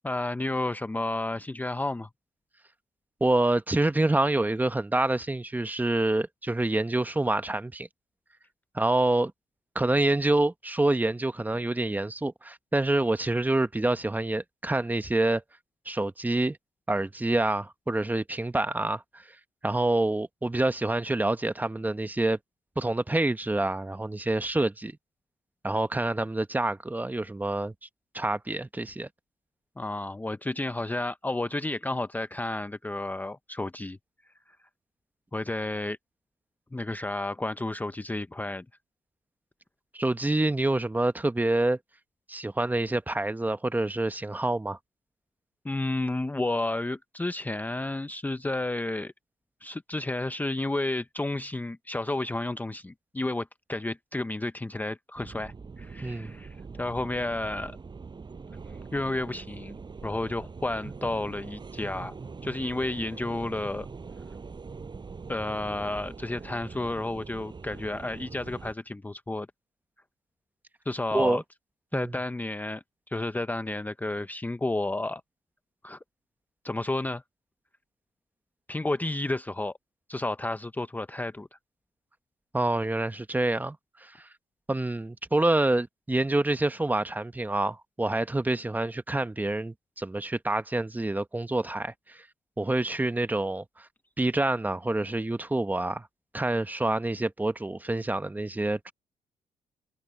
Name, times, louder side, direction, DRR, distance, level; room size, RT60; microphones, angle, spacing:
voice 1, 0.0-2.1 29.8-34.0 35.3-36.0 36.7-38.6 45.6-49.1 49.6-57.8 58.9-59.7 60.0-62.2 62.4-63.9 65.3-69.5 70.9-71.4 71.9-75.2 75.8-76.0 76.6-77.2 78.7-79.7 80.1-81.5, left 2 dB, 15° left, 0.7 m, -31 dB
voice 2, 3.2-7.9 8.7-9.3 9.7-15.4 15.8-16.6 16.9-19.2 19.6-22.4 22.8-25.0 25.6-27.7 28.1-29.1 39.9-41.8 42.3-44.8 56.0-56.3 71.1-71.4 71.9-72.2 82.5-83.8 84.0-84.3 84.7-92.2 92.6-93.9 94.2-96.1 96.3-98.9, right 2 dB, 15° right, 1.2 m, -27 dB
sound 1, 55.2-68.7, right 4 dB, 35° right, 6.4 m, -43 dB
supercardioid pair, 70°, 13 cm